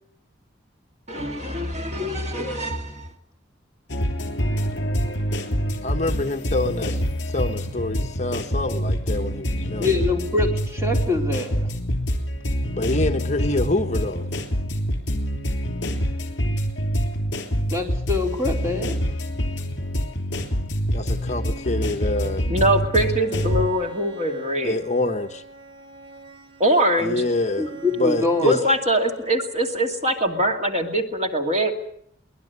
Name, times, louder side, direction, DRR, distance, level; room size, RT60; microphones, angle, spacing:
voice 1, 1.1-3.1 22.5-24.8 26.6-27.2 28.4-31.7, right 1 dB, 35° right, 3 dB, 2.5 m, -23 dB
voice 2, 2.0-2.5 9.6-11.6 17.7-19.0 27.6-28.6, left 3 dB, 15° right, 1 dB, 3.7 m, -25 dB
sound 1, 3.9-23.7, equal, 60° left, 3.2 m, -26 dB
voice 3, 5.8-7.0 7.2-9.9 12.8-14.3 20.9-22.4 24.6-25.4 27.0-27.7 28.0-28.6, left 2 dB, 35° left, 5 dB, 1.2 m, -26 dB
Bowed string instrument, 23.1-29.8, right 4 dB, 65° right, 3.5 m, -44 dB
23.5 x 19.5 x 8.3 m, 0.70 s
head